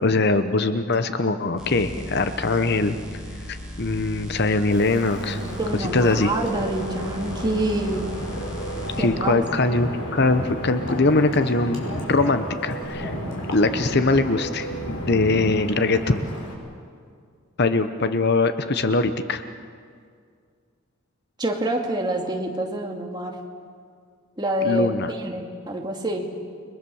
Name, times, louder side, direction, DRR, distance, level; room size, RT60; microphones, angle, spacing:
voice 1, 0.0-3.0 3.5-5.4 5.8-6.3 9.0-11.8 12.1-13.1 13.5-16.2 17.6-19.4 24.6-25.1, left 3 dB, 50° left, 10 dB, 0.9 m, -22 dB
sound 1, 1.6-9.0 12.8-12.9, equal, 5° right, 7.0 m, -37 dB
Wind, 4.7-16.5, equal, 85° left, 5.9 m, -33 dB
sound 2, 4.7-16.0, right 1 dB, 70° left, 2.4 m, -39 dB
voice 2, 5.4-8.1 9.0-9.4 21.4-23.4 24.4-26.3, right 1 dB, 20° right, 1 dB, 2.5 m, -27 dB
30.0 x 22.0 x 7.2 m, 2.1 s
head